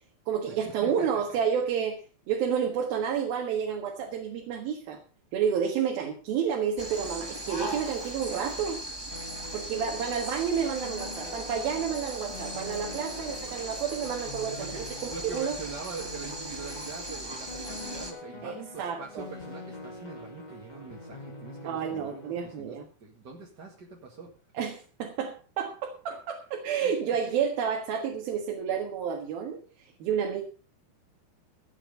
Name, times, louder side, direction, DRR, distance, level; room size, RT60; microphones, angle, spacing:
voice 1, 0.3-2.0 2.3-5.0 5.3-8.8 9.5-15.6 18.4-19.3 21.6-22.9 24.6-30.4, right 7 dB, 80° right, 2 dB, 3.4 m, -30 dB
voice 2, 0.8-1.2 14.5-14.8 15.1-24.3 24.6-24.7 26.8-27.2, right 4 dB, 35° right, 0 dB, 1.9 m, -43 dB
sound 1, 6.8-18.1, right 1 dB, 15° right, 0.9 m, -38 dB
sound 2, 9.1-22.6, left 2 dB, 75° left, 0.4 m, -45 dB
16.0 x 9.1 x 5.3 m, 0.36 s
omnidirectional pair, 4.2 m